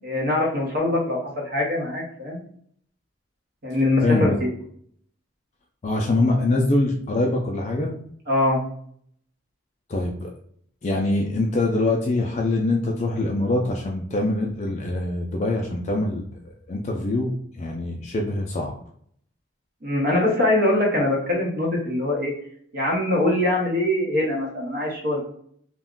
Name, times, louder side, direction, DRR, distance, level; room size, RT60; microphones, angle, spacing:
voice 1, 0.0-2.4 3.6-4.3 8.3-8.6 19.8-22.3 22.7-25.2, left 1 dB, 50° right, -2 dB, 0.7 m, -23 dB
voice 2, 4.0-4.4 5.8-7.9 9.9-10.3 10.8-16.2 16.7-18.7, left 2 dB, 35° left, 0 dB, 0.3 m, -24 dB
2.3 x 2.1 x 3.5 m, 0.64 s
head